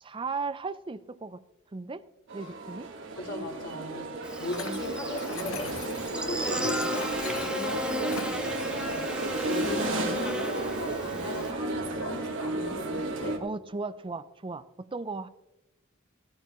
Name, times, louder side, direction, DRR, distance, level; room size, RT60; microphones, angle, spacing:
voice 1, 0.0-1.4 1.7-2.0 2.3-2.9 7.4-7.5 13.4-15.3, right 4 dB, 25° right, 12 dB, 0.5 m, -36 dB
sound 1, 2.3-13.4, right 2 dB, 65° right, 2.0 m, -33 dB
voice 2, 3.1-13.4, left 1 dB, 60° left, -5 dB, 4.6 m, -38 dB
Buzz, 4.2-11.5, equal, 5° right, 1.3 m, -35 dB
sound 2, 4.5-6.1 6.6-8.4, left 6 dB, 80° left, 1.2 m, -42 dB
17.0 x 14.0 x 3.1 m, 0.90 s
head